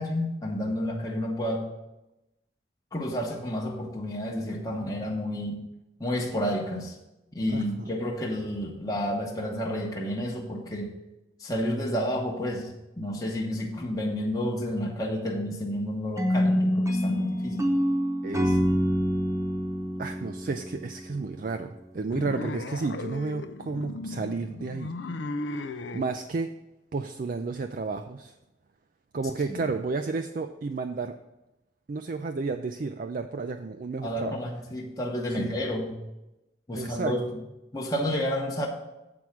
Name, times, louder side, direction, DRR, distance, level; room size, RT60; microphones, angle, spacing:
voice 1, 0.0-1.7 2.9-5.6 6.0-7.0 7.3-10.9 11.4-17.7 29.5-29.7 34.0-36.0 36.7-37.3 37.7-38.7, equal, 20° left, -2 dB, 0.9 m, -30 dB
sound 1, 16.2-21.3, equal, 15° right, 0.9 m, -26 dB
voice 2, 18.2-18.6 20.0-24.9 25.5-25.7 25.9-26.5 26.9-28.4 29.1-31.1 31.9-34.3 35.4-35.5 36.7-37.1, right 4 dB, 45° right, 7 dB, 0.4 m, -32 dB
sound 2, 22.1-26.1, left 2 dB, 85° left, 0.5 m, -36 dB
7.8 x 4.6 x 7.2 m, 0.95 s
head